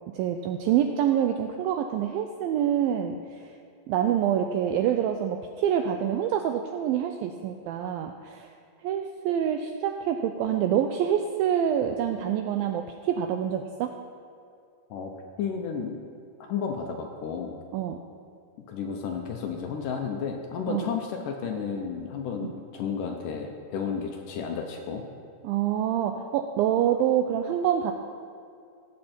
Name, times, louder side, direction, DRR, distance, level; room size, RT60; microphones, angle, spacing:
voice 1, 0.1-3.5 3.9-8.5 8.8-13.9 17.7-18.0 20.7-20.9 22.4-22.5 25.4-27.9, right 9 dB, 90° right, 5 dB, 2.0 m, -26 dB
voice 2, 15.4-16.0 16.4-17.5 18.7-25.0, left 6 dB, 75° left, 3 dB, 2.0 m, -32 dB
18.0 x 7.8 x 4.4 m, 2.4 s
omnidirectional pair, 4.7 m